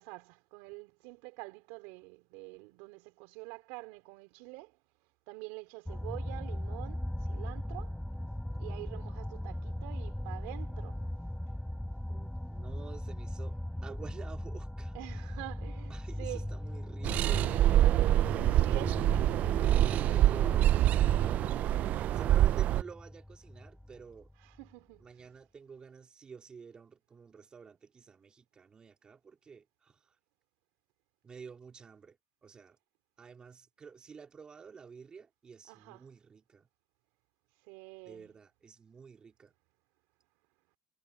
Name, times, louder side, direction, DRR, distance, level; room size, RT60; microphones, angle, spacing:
voice 1, 0.0-4.8 5.3-8.0 8.6-11.0 14.9-16.5 18.6-19.6 24.4-25.3 35.7-36.1 37.7-38.4, right 26 dB, 85° right, 4.5 m, -47 dB
sound 1, 5.9-24.6, left 1 dB, 5° left, 3.8 m, -39 dB
voice 2, 12.1-15.0 15.9-17.6 18.7-18.9 19.9-21.8 22.1-24.3 25.0-30.0 31.2-32.2 32.4-32.8 33.2-36.7 38.1-39.5, right 6 dB, 25° right, 3.9 m, -49 dB
sound 2, 17.0-22.8, right 13 dB, 50° right, 0.3 m, -25 dB
cardioid pair, 125°, 3 cm